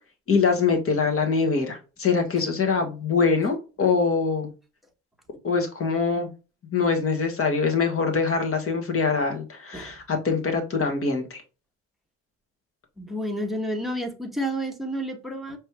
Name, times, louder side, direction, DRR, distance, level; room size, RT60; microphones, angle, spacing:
voice 1, 0.3-4.5 5.4-6.3 6.7-11.4, left 5 dB, 45° left, 5 dB, 1.6 m, -24 dB
voice 2, 13.0-15.6, equal, ahead, 2 dB, 1.3 m, -30 dB
5.2 x 3.2 x 3.0 m, 0.32 s
cardioid pair, 90°, 30 cm